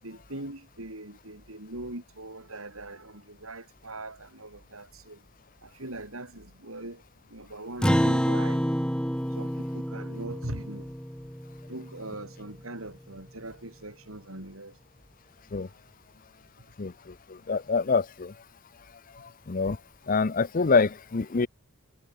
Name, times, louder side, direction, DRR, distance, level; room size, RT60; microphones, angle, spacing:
voice 1, 0.0-5.2 5.6-7.0 7.3-8.7 9.3-10.9 11.6-14.8, right 2 dB, 70° right, 6.4 m, -41 dB
Acoustic guitar, 7.8-12.5, equal, 5° left, 4.5 m, -28 dB
voice 2, 17.5-18.0 19.5-19.8 20.1-21.5, left 4 dB, 40° left, 0.6 m, -24 dB
head